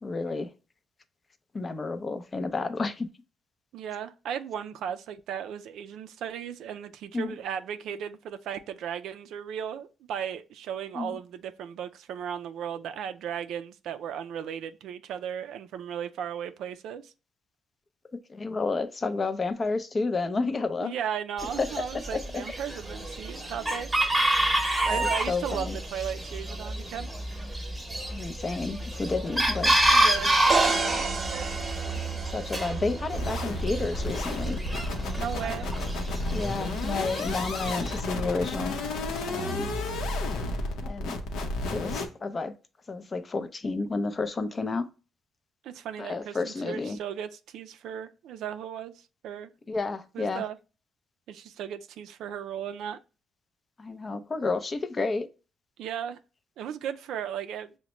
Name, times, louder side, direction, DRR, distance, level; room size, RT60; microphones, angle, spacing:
voice 1, 0.0-0.5 1.5-3.1 7.1-7.3 10.9-11.2 18.3-20.9 21.6-21.7 22.1-22.4 24.9-25.8 28.1-29.7 30.7-30.8 32.3-34.6 36.3-38.8 39.2-39.7 40.8-41.2 41.7-42.5 42.9-44.9 46.0-47.0 49.7-50.4 53.8-55.3, left 3 dB, 35° left, 0.5 m, -31 dB
voice 2, 3.7-17.1 20.8-23.9 24.9-27.1 29.9-31.0 31.3-31.6 32.2-32.3 35.2-35.8 45.6-49.5 50.1-50.6 51.3-53.0 55.8-56.2 56.6-57.7, right 8 dB, 80° right, 0.3 m, -36 dB
Chicken rooster, 21.4-38.0, right 1 dB, 10° right, 0.9 m, -29 dB
sound 1, 30.5-34.3, right 4 dB, 45° right, 0.8 m, -32 dB
sound 2, 33.1-42.1, left 2 dB, 85° left, 0.7 m, -32 dB
5.7 x 2.1 x 3.0 m
cardioid pair, 90°, 0 cm